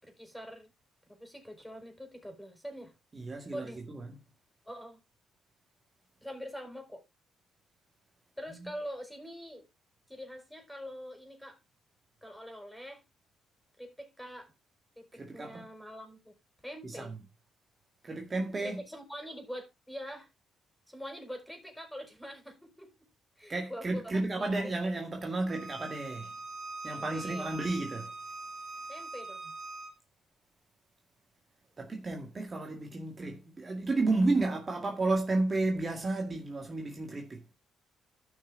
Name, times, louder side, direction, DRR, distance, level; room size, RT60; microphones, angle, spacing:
voice 1, 0.0-0.7 1.1-3.0 3.5-3.9 4.7-5.0 6.2-7.0 8.4-9.7 10.1-11.6 12.2-13.0 13.8-14.5 15.0-16.4 16.6-17.2 18.6-20.3 20.9-22.9 23.4-24.9 26.9-27.5 28.9-29.5, equal, 5° left, 4.5 m, -44 dB
voice 2, 3.1-4.1 15.1-15.7 16.8-17.2 18.0-18.8 23.5-26.3 26.8-28.1 31.8-37.4, right 2 dB, 30° right, 1.9 m, -32 dB
Bowed string instrument, 25.5-29.9, right 2 dB, 50° right, 4.4 m, -42 dB
13.5 x 5.9 x 3.7 m
cardioid pair, 90°, 0 cm